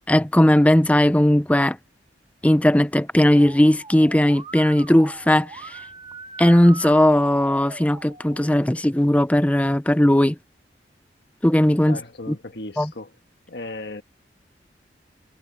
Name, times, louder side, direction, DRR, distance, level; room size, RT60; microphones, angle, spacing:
voice 1, 0.1-1.8 2.4-5.8 6.4-10.4 11.4-12.0 12.8-12.9, left 1 dB, 10° left, 0.6 m, -17 dB
Musical instrument, 3.1-8.7, right 4 dB, 30° right, 1.9 m, -41 dB
voice 2, 11.9-13.1 13.5-14.0, left 2 dB, 70° left, 1.5 m, -36 dB
head